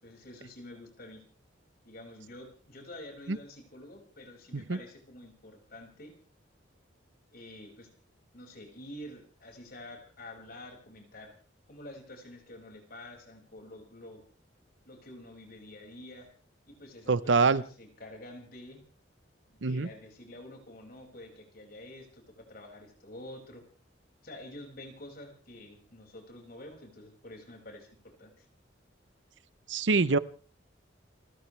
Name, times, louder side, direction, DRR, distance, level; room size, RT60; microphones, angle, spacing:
voice 1, 0.0-1.2 1.8-6.1 7.3-7.9 8.3-11.3 11.7-14.2 14.8-16.3 16.7-18.8 19.5-23.6 24.2-28.5, left 1 dB, 50° left, 2 dB, 5.8 m, -48 dB
voice 2, 17.1-17.6 19.6-19.9 29.7-30.2, right 4 dB, 75° right, 17 dB, 0.8 m, -25 dB
30.0 x 14.5 x 3.3 m, 0.39 s
head